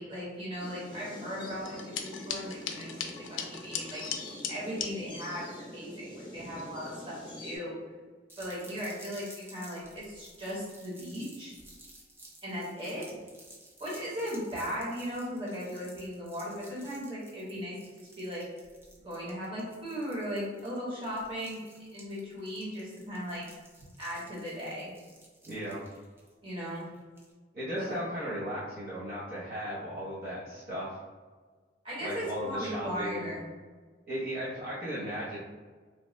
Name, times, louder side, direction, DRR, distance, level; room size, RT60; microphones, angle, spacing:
voice 1, 0.0-4.0 4.5-7.8 8.4-11.5 12.4-13.1 13.8-18.5 19.0-21.6 21.9-23.4 24.0-24.9 26.4-26.9 27.7-27.9 31.8-33.4, equal, 30° right, -7 dB, 1.1 m, -37 dB
sound 1, 0.6-7.6, left 1 dB, 25° left, 0.6 m, -45 dB
sound 2, 1.6-4.9, left 7 dB, 85° left, 0.3 m, -37 dB
sound 3, 8.3-27.3, right 1 dB, 15° right, 0.4 m, -54 dB
voice 2, 25.5-25.8 27.5-31.0 32.0-33.3 34.1-35.4, equal, 55° right, -9 dB, 0.7 m, -36 dB
2.9 x 2.1 x 3.0 m, 1.4 s
head